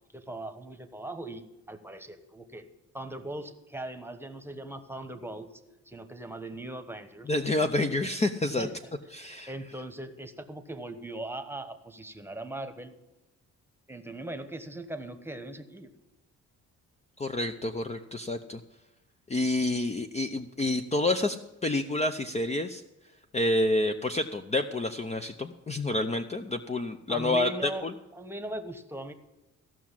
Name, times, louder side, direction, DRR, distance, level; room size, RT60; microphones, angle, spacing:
voice 1, 0.1-2.7 2.9-5.5 5.9-7.3 8.6-8.7 9.5-12.9 13.9-15.9 27.1-27.9 28.1-29.1, right 1 dB, 10° right, 8 dB, 1.2 m, -39 dB
voice 2, 7.3-8.7 9.1-9.5 17.2-18.6 19.3-21.4 21.6-22.8 23.3-27.9, left 2 dB, 20° left, 7 dB, 0.7 m, -28 dB
15.0 x 6.1 x 7.5 m, 1.0 s
cardioid pair, 90°, 30 cm